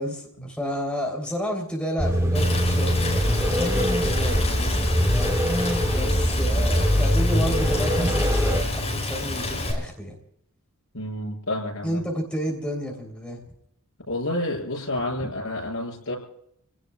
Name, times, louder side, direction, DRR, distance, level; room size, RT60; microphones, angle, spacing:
voice 1, 0.0-5.3 5.9-10.1 11.8-13.4 15.2-15.3, equal, 5° left, 0 dB, 3.3 m, -31 dB
sound 1, 2.0-8.6, equal, 15° right, 1.4 m, -23 dB
Rain, 2.3-9.7, left 2 dB, 30° left, 5.5 m, -29 dB
voice 2, 10.9-12.0 14.1-16.2, left 1 dB, 70° left, 0 dB, 6.7 m, -29 dB
29.0 x 18.0 x 2.3 m, 0.74 s
head